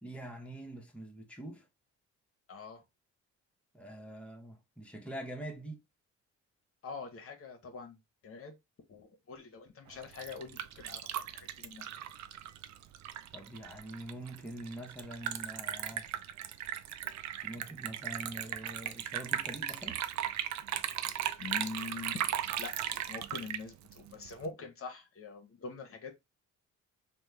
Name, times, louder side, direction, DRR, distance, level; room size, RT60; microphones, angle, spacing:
voice 1, 0.0-1.7 3.7-5.8 13.3-16.1 17.4-20.0, right 1 dB, 5° left, 0.7 m, -44 dB
voice 2, 2.5-2.8 6.8-8.0 8.2-8.6 8.9-11.9 21.4-22.3 22.6-26.1, left 4 dB, 45° left, 0.8 m, -44 dB
Liquid, 9.9-24.5, right 11 dB, 70° right, 0.4 m, -37 dB
3.0 x 2.1 x 3.2 m
cardioid pair, 90°, 30 cm